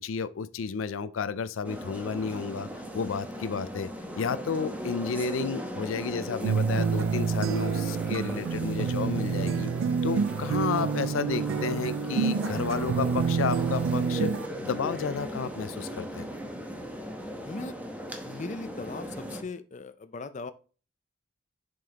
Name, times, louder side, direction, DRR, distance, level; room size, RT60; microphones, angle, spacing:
voice 1, 0.0-3.9 4.2-9.7 10.0-16.3, left 5 dB, 90° left, 0.4 m, -32 dB
sound 1, 1.6-19.4, equal, 10° right, 1.0 m, -37 dB
sound 2, 6.4-14.5, right 6 dB, 85° right, 0.4 m, -28 dB
voice 2, 18.2-20.5, left 3 dB, 40° left, 0.5 m, -39 dB
7.3 x 5.2 x 2.9 m
head